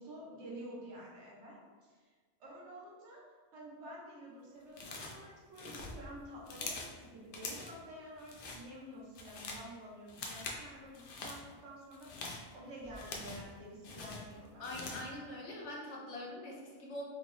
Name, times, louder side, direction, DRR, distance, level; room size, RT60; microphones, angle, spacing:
voice 1, 0.0-2.1 2.4-3.2 3.5-15.0, right 1 dB, 90° right, -4 dB, 1.2 m, -50 dB
sound 1, 4.7-5.2 5.5-7.0 7.3-7.8 8.2-8.6 9.0-9.7 10.1-10.6 10.9-11.4 11.9-13.5 13.8-15.1, left 3 dB, 60° left, 0.6 m, -44 dB
voice 2, 14.6-17.0, left 1 dB, 85° left, -2 dB, 1.0 m, -43 dB
3.5 x 2.0 x 3.7 m, 1.5 s
omnidirectional pair, 1.2 m